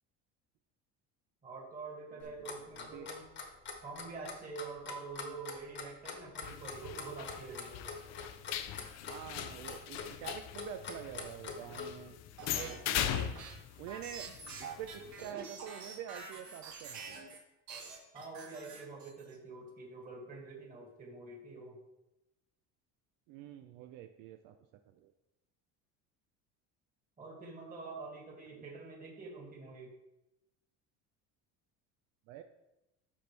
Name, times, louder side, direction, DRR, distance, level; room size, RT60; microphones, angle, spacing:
voice 1, 1.4-3.3 3.8-7.9 16.8-17.0 18.1-21.8 27.2-29.9, right 4 dB, 25° right, -2 dB, 2.1 m, -46 dB
Clock, 2.2-11.9, left 5 dB, 30° left, 1.2 m, -43 dB
voice 2, 2.8-3.1 5.2-5.4 9.1-12.1 12.5-13.3 13.8-14.3 14.8-17.2 23.3-24.5 25.0-25.1 28.6-28.7 32.3-32.4, right 10 dB, 75° right, 7 dB, 0.6 m, -46 dB
sound 1, 6.4-15.3, left 11 dB, 50° left, 0.5 m, -40 dB
sound 2, 12.4-17.4 17.7-19.3, right 4 dB, 55° right, 2.2 m, -47 dB
12.0 x 4.4 x 3.3 m, 0.94 s
cardioid pair, 140°, 34 cm